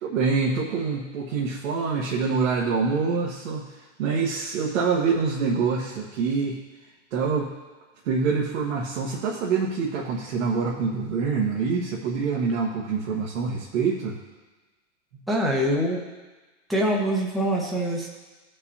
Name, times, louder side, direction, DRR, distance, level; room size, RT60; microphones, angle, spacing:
voice 1, 0.0-3.6 4.0-6.6 7.1-7.5 8.0-14.2 15.1-15.2, right 5 dB, 75° right, -4 dB, 1.5 m, -25 dB
voice 2, 15.3-16.0 16.7-18.1, equal, ahead, -4 dB, 1.1 m, -24 dB
16.5 x 5.5 x 2.8 m, 1.2 s
supercardioid pair, 140°, 38 cm